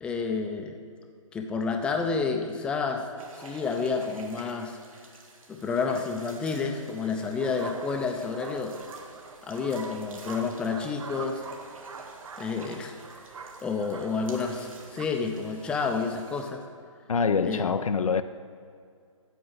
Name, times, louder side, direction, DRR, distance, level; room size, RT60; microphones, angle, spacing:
voice 1, 0.0-0.8 1.3-3.1 3.4-4.8 5.5-8.8 9.4-11.4 12.4-12.9 13.6-16.6 17.4-17.7, left 5 dB, 5° left, 4 dB, 0.4 m, -30 dB
sound 1, 3.2-16.5, right 2 dB, 80° right, 1.8 m, -49 dB
sound 2, 7.4-15.1, right 4 dB, 65° right, 0.9 m, -44 dB
voice 2, 17.1-18.2, left 5 dB, 90° left, 11 dB, 0.5 m, -25 dB
8.9 x 7.7 x 6.6 m, 2.3 s
hypercardioid pair, 140°, 17 cm